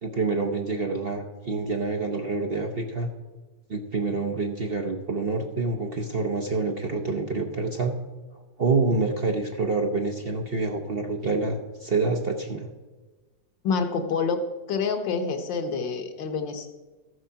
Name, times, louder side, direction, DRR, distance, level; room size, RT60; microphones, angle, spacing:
voice 1, 0.0-3.1 3.7-7.9 8.6-12.7, right 3 dB, 45° right, 3 dB, 0.7 m, -27 dB
voice 2, 13.6-14.4 14.7-16.7, left 5 dB, 90° left, 6 dB, 1.8 m, -27 dB
14.0 x 7.8 x 5.7 m, 1.3 s
omnidirectional pair, 1.9 m